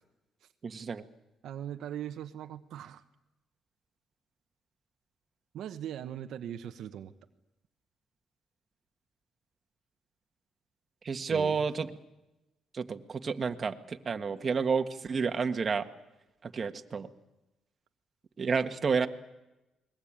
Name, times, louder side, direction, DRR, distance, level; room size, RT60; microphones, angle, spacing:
voice 1, 0.6-1.0 11.0-11.9 12.7-15.9 16.4-17.1 18.4-19.1, right 5 dB, 40° right, 7 dB, 1.6 m, -30 dB
voice 2, 1.4-3.0 5.5-7.1 11.3-12.0, right 10 dB, 75° right, 7 dB, 1.2 m, -40 dB
28.5 x 21.0 x 8.9 m, 0.99 s
cardioid pair, 90°, 0 cm